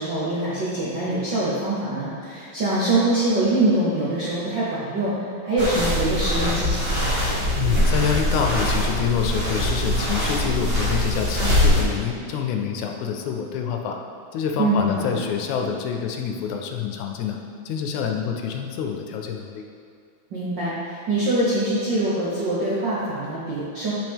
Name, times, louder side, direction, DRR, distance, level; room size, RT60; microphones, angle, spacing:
voice 1, 0.0-5.1 5.4-7.2 14.6-15.2 20.3-23.9, right 2 dB, 65° right, -9 dB, 1.1 m, -24 dB
sound 1, 5.6-11.8, left 1 dB, 35° right, 0.9 m, -22 dB
voice 2, 7.6-14.0 14.3-17.4 17.7-19.6, left 7 dB, 80° left, 3 dB, 1.9 m, -26 dB
9.1 x 5.6 x 3.5 m, 2.3 s
omnidirectional pair, 3.5 m